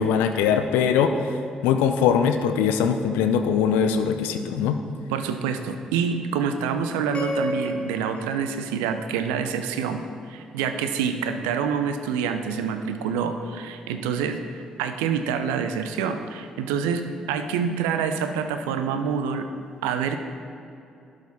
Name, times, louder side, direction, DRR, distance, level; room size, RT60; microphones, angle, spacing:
voice 1, 0.0-1.4 1.6-4.8, left 7 dB, 75° left, 8 dB, 0.5 m, -21 dB
voice 2, 5.1-19.5 19.8-20.2, right 6 dB, 80° right, 8 dB, 0.5 m, -27 dB
sound 1, 7.1-9.5, left 1 dB, 40° left, 1.4 m, -33 dB
12.0 x 4.9 x 4.1 m, 2.7 s
hypercardioid pair, 45°, 3 cm